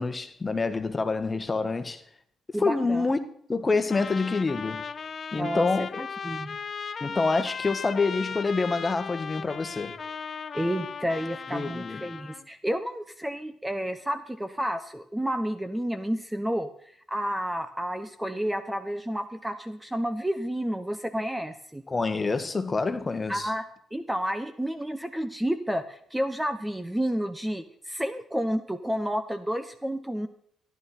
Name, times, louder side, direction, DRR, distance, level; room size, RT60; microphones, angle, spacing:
voice 1, 0.0-2.0 2.6-3.2 3.5-4.8 5.3-6.0 7.0-10.0 11.5-12.0 21.9-23.5, left 3 dB, 25° left, 1.5 m, -27 dB
voice 2, 2.5-3.1 5.3-5.7 6.0-6.6 10.5-16.7 17.1-21.8 23.3-23.6 23.9-30.3, equal, 5° right, 1.0 m, -30 dB
Trumpet, 3.9-12.5, left 6 dB, 45° left, 0.8 m, -37 dB
14.0 x 11.0 x 4.3 m
cardioid pair, 90°, 0 cm